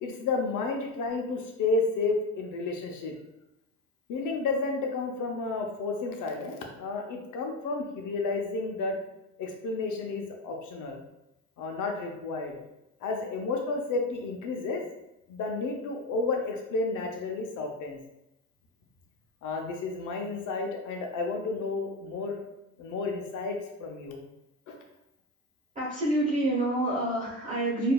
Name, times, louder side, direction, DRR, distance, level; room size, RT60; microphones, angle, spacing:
voice 1, 0.0-3.1 4.1-9.0 9.4-11.0 11.6-12.6 13.0-14.8 15.3-18.0 19.4-22.4 22.8-24.2 24.7-24.8, left 3 dB, 80° left, 2 dB, 0.7 m, -31 dB
voice 2, 25.7-27.9, right 1 dB, 25° right, -7 dB, 1.0 m, -27 dB
4.6 x 2.6 x 2.3 m, 0.89 s
cardioid pair, 90°, 30 cm